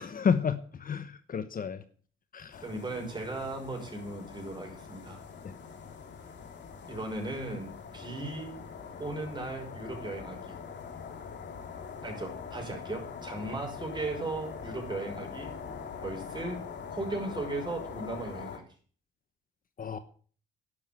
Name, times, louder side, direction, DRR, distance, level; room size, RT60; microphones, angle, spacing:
voice 1, 0.0-1.8 2.3-2.6 5.4-5.6 19.8-20.0, left 6 dB, 45° left, 12 dB, 1.0 m, -31 dB
sound 1, 2.5-18.6, left 6 dB, 60° left, 2.7 m, -43 dB
voice 2, 2.6-5.2 6.9-8.6 9.0-10.6 12.0-15.6 16.0-16.6 16.9-18.6, right 2 dB, 20° right, 2 dB, 6.0 m, -37 dB
11.0 x 7.4 x 8.7 m, 0.43 s
cardioid pair, 90°, 20 cm